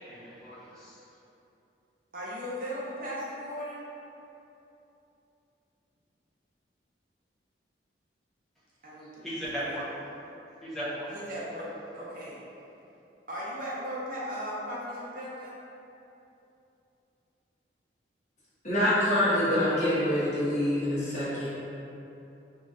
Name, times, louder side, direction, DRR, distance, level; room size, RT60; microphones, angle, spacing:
voice 1, 0.1-1.0 9.2-9.8 10.6-11.1, equal, ahead, -11 dB, 0.8 m, -36 dB
voice 2, 2.1-3.9 8.8-9.8 11.1-12.4 13.3-15.6, equal, 50° right, -7 dB, 0.6 m, -37 dB
voice 3, 18.6-21.5, left 1 dB, 40° left, -11 dB, 1.1 m, -25 dB
3.8 x 3.0 x 2.5 m, 2.9 s
head